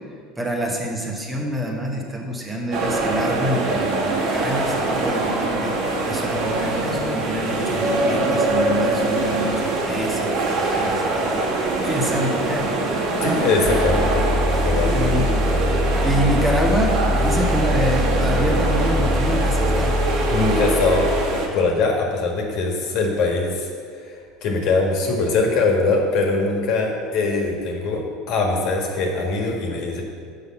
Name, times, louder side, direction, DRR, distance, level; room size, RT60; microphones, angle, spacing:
voice 1, 0.4-12.9 14.9-15.5 15.7-20.0, equal, 10° right, 0 dB, 1.2 m, -27 dB
sound 1, 2.7-21.5, right 2 dB, 65° right, 1.7 m, -23 dB
voice 2, 13.2-14.3 14.6-15.3 20.3-21.1 21.5-23.7 24.4-28.0 28.3-30.0, left 3 dB, 60° left, 1 dB, 1.6 m, -22 dB
sound 2, 13.6-21.2, left 1 dB, 35° right, 1.8 m, -22 dB
6.3 x 5.4 x 7.0 m, 2.1 s
supercardioid pair, 120°, 0 cm